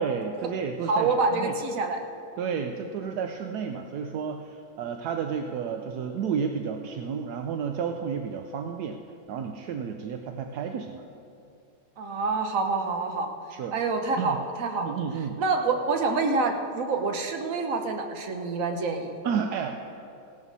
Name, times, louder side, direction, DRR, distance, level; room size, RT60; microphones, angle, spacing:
voice 1, 0.0-1.5 2.4-9.0 9.3-11.0 13.5-13.8 14.2-14.4 14.8-15.4 19.2-19.7, right 6 dB, 70° right, 5 dB, 0.9 m, -31 dB
voice 2, 0.9-2.0 12.0-13.3 13.7-15.0 15.4-19.1, right 3 dB, 50° right, 4 dB, 1.2 m, -27 dB
16.5 x 12.0 x 4.1 m, 2.7 s
omnidirectional pair, 2.2 m